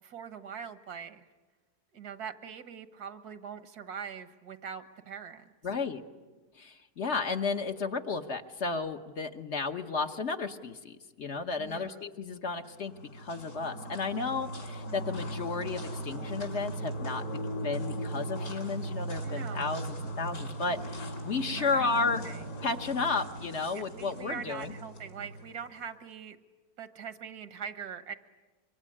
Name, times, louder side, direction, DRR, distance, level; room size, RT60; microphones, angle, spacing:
voice 1, 0.0-1.3 1.9-5.5 11.6-12.0 19.2-19.8 21.5-22.4 23.7-26.4 26.8-28.1, right 7 dB, 75° right, 11 dB, 1.8 m, -42 dB
voice 2, 5.6-6.0 6.6-17.2 17.6-22.3 22.6-24.7, left 4 dB, 50° left, 6 dB, 1.3 m, -33 dB
sound 1, 12.6-25.9, right 1 dB, 75° left, 4.4 m, -38 dB
25.5 x 23.5 x 9.9 m, 1.3 s
omnidirectional pair, 1.7 m